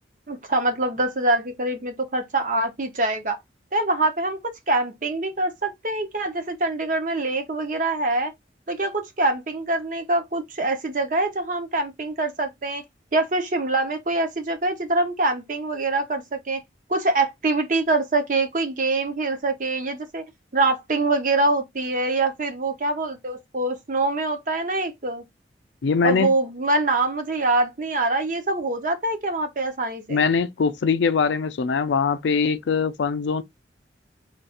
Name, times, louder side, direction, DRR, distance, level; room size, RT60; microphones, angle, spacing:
voice 1, 0.3-3.4 3.7-4.4 4.7-8.3 8.7-12.8 13.1-16.6 16.9-20.2 20.5-25.2 26.0-30.2, right 2 dB, 45° right, 0.8 m, -24 dB
voice 2, 25.8-26.3 30.1-33.4, left 5 dB, 75° left, 0.4 m, -22 dB
3.2 x 2.4 x 4.2 m
head